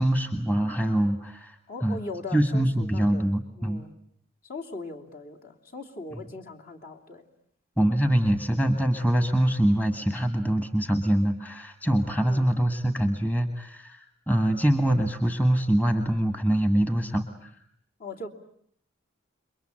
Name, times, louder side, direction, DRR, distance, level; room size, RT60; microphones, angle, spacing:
voice 1, 0.0-2.0 2.3-3.8 7.8-17.5, right 1 dB, 10° left, 8 dB, 1.6 m, -24 dB
voice 2, 1.7-3.3 3.6-3.9 4.4-7.3 12.2-12.5 18.0-18.3, left 2 dB, 45° left, 1 dB, 2.9 m, -39 dB
28.5 x 23.0 x 9.0 m, 0.66 s
head